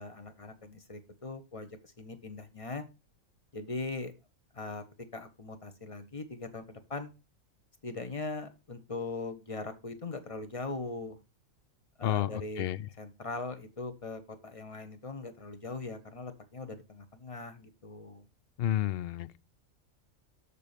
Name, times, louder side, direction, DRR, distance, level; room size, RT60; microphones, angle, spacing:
voice 1, 0.0-2.8 3.5-4.1 4.5-4.8 5.1-7.1 7.8-11.2 12.0-12.7 13.0-18.3, left 3 dB, 25° left, 1.1 m, -40 dB
voice 2, 18.6-19.4, left 12 dB, 60° left, 0.7 m, -30 dB
7.0 x 6.7 x 5.1 m
omnidirectional pair, 1.4 m